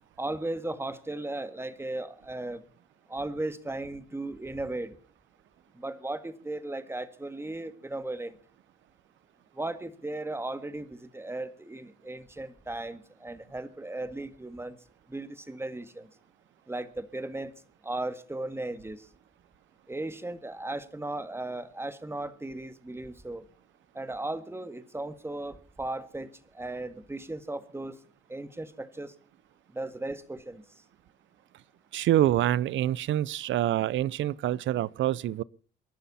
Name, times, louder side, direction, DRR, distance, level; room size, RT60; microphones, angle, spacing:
voice 1, 0.2-2.6 3.1-5.0 5.7-8.4 9.5-14.8 15.1-16.1 16.7-17.5 17.8-19.1 19.9-23.5 23.9-28.0 28.3-29.1 29.7-30.6, right 2 dB, 10° right, 1.8 m, -36 dB
voice 2, 31.9-35.4, right 13 dB, 75° right, 0.6 m, -26 dB
28.0 x 11.5 x 4.2 m
cardioid pair, 90°, 20 cm